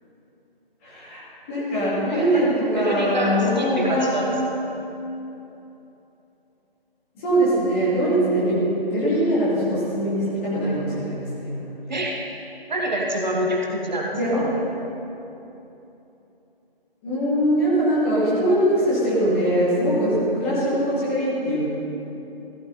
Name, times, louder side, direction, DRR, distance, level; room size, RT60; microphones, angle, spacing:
voice 1, 0.8-1.2 1.5-4.3 7.1-11.5 14.1-14.4 17.0-21.7, right 1 dB, 15° left, -9 dB, 2.5 m, -22 dB
voice 2, 2.1-2.5 2.7-4.3 11.9-12.2 12.7-14.5 20.6-20.8, right 1 dB, 50° right, -1 dB, 1.6 m, -27 dB
15.0 x 12.0 x 4.2 m, 3.0 s
figure-of-eight pair, 160°, 30 cm